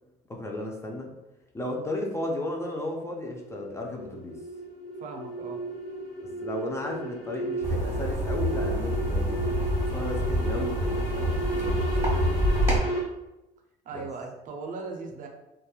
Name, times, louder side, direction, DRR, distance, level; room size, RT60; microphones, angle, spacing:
voice 1, 0.3-1.1 1.5-4.4 6.4-12.2 13.9-14.1, left 1 dB, 15° left, 0 dB, 0.4 m, -35 dB
sound 1, 2.9-13.0, right 2 dB, 60° left, 1.0 m, -34 dB
voice 2, 5.0-5.6 13.9-15.3, right 4 dB, 50° right, 3 dB, 0.5 m, -38 dB
sound 2, 7.6-12.8, equal, 20° right, 1.2 m, -27 dB
2.9 x 2.2 x 2.3 m, 0.95 s
cardioid pair, 110°, 17 cm